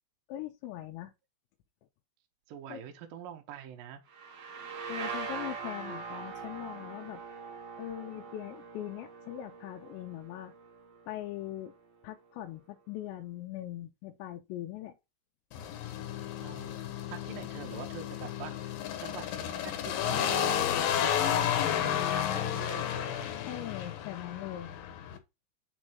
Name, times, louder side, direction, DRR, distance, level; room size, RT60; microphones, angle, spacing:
voice 1, 0.3-1.1 2.7-2.8 4.9-7.2 7.8-10.5 11.1-11.8 12.0-15.0 17.3-17.5 23.5-24.7, left 13 dB, 90° left, 2.9 m, -41 dB
voice 2, 2.5-4.0 16.4-18.7 19.0-23.3, right 9 dB, 70° right, 2.2 m, -45 dB
sound 1, 4.1-11.7, right 5 dB, 50° right, 2.0 m, -42 dB
sound 2, 15.5-25.2, left 10 dB, 70° left, 2.3 m, -32 dB
6.4 x 4.1 x 6.0 m
omnidirectional pair, 5.0 m